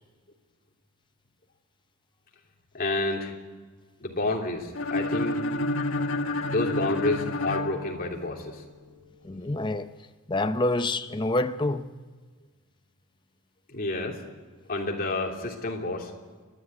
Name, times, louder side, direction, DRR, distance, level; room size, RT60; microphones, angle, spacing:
voice 1, 2.7-3.3 4.0-5.4 6.4-8.6 13.7-14.2 14.7-16.1, left 2 dB, 40° left, 3.0 m, -29 dB
sound 1, 4.7-8.6, left 2 dB, 80° left, 1.6 m, -29 dB
voice 2, 9.2-9.9 10.3-11.9, left 2 dB, 20° left, 0.6 m, -27 dB
29.0 x 11.5 x 9.5 m
head